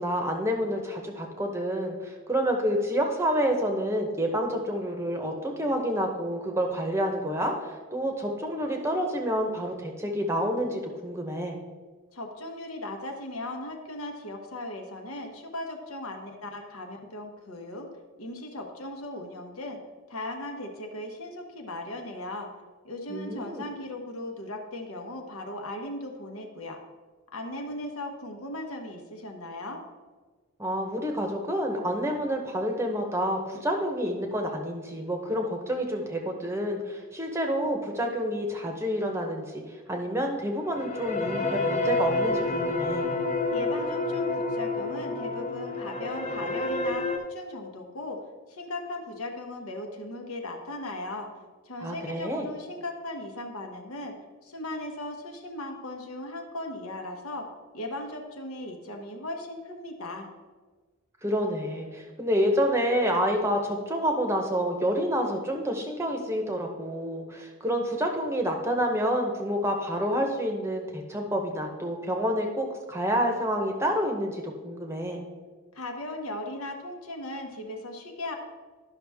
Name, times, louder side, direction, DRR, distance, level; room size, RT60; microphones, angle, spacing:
voice 1, 0.0-11.6 23.1-23.6 30.6-39.6 39.9-43.1 51.8-52.5 61.2-75.2, equal, 10° right, 3 dB, 0.8 m, -28 dB
voice 2, 12.1-17.9 18.2-19.8 20.1-22.5 22.8-26.8 27.3-29.8 43.5-48.2 48.5-51.3 51.6-54.1 54.4-57.5 57.7-60.3 75.7-78.3, left 1 dB, 80° left, 3 dB, 1.2 m, -37 dB
sound 1, 40.6-47.2, left 2 dB, 30° left, 0.7 m, -29 dB
11.5 x 5.9 x 3.5 m, 1.4 s
head